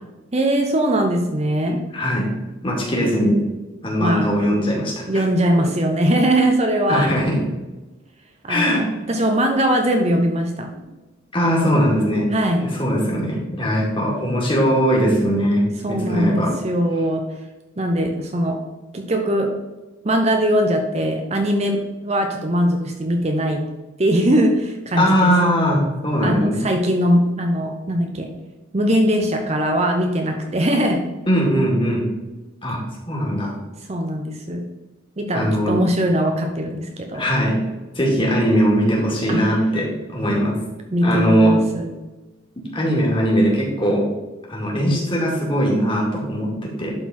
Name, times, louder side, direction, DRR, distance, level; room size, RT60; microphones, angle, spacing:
voice 1, 0.3-1.8 4.0-4.4 5.1-7.1 8.4-10.7 12.3-12.7 15.8-17.3 17.8-18.6 18.9-19.5 20.0-23.7 24.0-25.3 26.2-28.3 28.7-31.0 33.9-34.6 35.2-37.3 39.3-39.5 40.9-41.9, equal, 30° right, 3 dB, 0.7 m, -20 dB
voice 2, 1.9-2.2 2.6-3.3 3.8-5.2 6.9-7.4 8.5-8.8 11.3-12.3 12.6-16.5 25.0-26.6 31.3-32.1 32.6-32.8 33.1-33.5 35.3-35.7 37.1-37.6 38.0-40.6 41.0-41.5 42.6-44.0 44.5-46.9, equal, 25° left, -3 dB, 2.2 m, -20 dB
11.5 x 4.1 x 4.2 m, 1.1 s
head